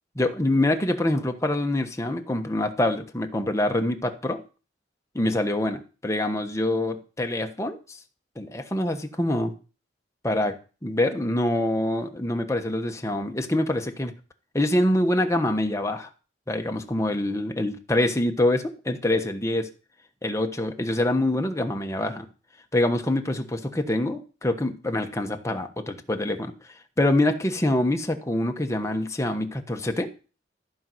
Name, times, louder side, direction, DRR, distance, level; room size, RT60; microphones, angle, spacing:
voice 1, 0.2-4.4 5.1-8.0 8.4-9.5 10.2-14.1 14.5-16.1 16.5-19.7 20.2-22.3 22.7-26.5 27.0-30.1, left 1 dB, 15° left, 5 dB, 1.2 m, -25 dB
14.0 x 5.4 x 7.7 m, 0.35 s
head